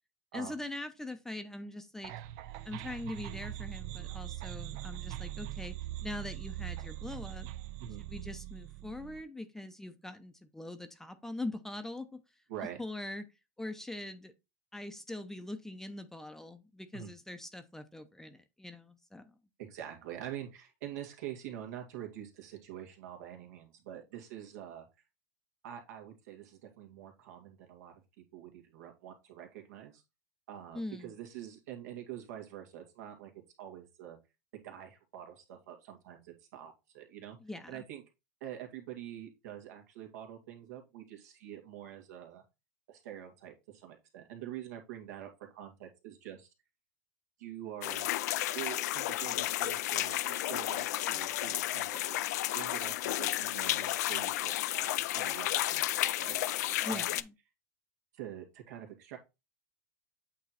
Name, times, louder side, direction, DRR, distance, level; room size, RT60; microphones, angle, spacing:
voice 1, 0.3-2.1 2.7-5.8 6.0-7.5 8.0-12.2 12.8-13.2 13.6-14.3 14.7-19.3 30.7-31.1 37.4-37.8 56.8-57.3, left 2 dB, 5° left, 0.7 m, -42 dB
sound 1, 2.0-9.2, right 14 dB, 55° right, 0.5 m, -42 dB
voice 2, 19.6-24.9 25.6-27.9 28.3-30.0 30.5-33.3 33.6-34.2 34.5-37.4 37.7-38.0 38.4-42.4 42.9-46.5 47.4-48.1 48.5-56.4 56.9-57.0 58.1-59.2, right 11 dB, 75° right, 2.0 m, -45 dB
sound 2, 47.8-57.2, left 15 dB, 75° left, 0.4 m, -32 dB
8.4 x 3.1 x 4.1 m
supercardioid pair, 120°, 9 cm